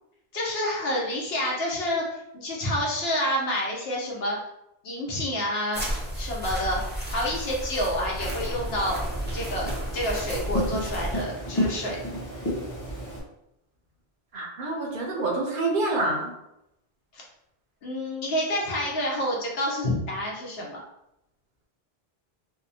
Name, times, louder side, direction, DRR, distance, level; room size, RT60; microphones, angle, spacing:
voice 1, 0.3-4.4 4.8-5.8 6.2-6.8 7.1-9.0 9.3-12.0 17.1-17.2 17.8-20.8, equal, 80° left, -2 dB, 1.0 m, -28 dB
sound 1, 5.7-11.2, right 1 dB, 20° right, 0.3 m, -32 dB
sound 2, 8.2-13.2, equal, 20° left, 0.6 m, -32 dB
voice 2, 14.3-16.3, right 2 dB, 65° right, 0 dB, 0.7 m, -27 dB
2.7 x 2.1 x 2.6 m, 0.84 s
omnidirectional pair, 1.0 m